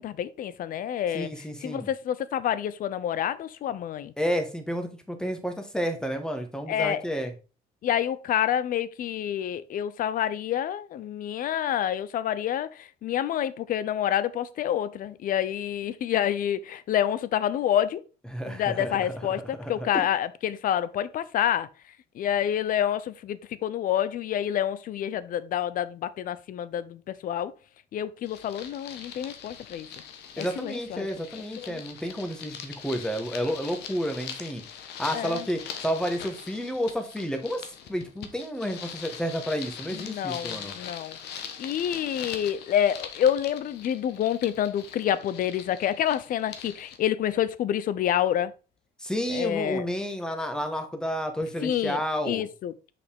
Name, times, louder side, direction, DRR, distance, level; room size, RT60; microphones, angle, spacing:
voice 1, 0.0-1.3 1.6-4.1 6.7-7.0 7.8-18.0 18.5-21.7 22.1-27.5 27.9-29.9 30.4-31.1 31.6-31.8 35.1-35.4 39.9-41.2 41.6-48.5 49.3-49.9 51.6-52.0 52.2-52.9, left 10 dB, 55° left, 0.6 m, -28 dB
voice 2, 1.1-1.9 4.2-7.3 18.3-19.1 19.6-20.0 30.4-34.6 35.0-40.7 49.0-52.4, equal, 5° left, 1.3 m, -31 dB
sound 1, 28.2-47.0, left 8 dB, 80° left, 1.1 m, -42 dB
6.6 x 5.1 x 3.6 m
cardioid pair, 110°, 17 cm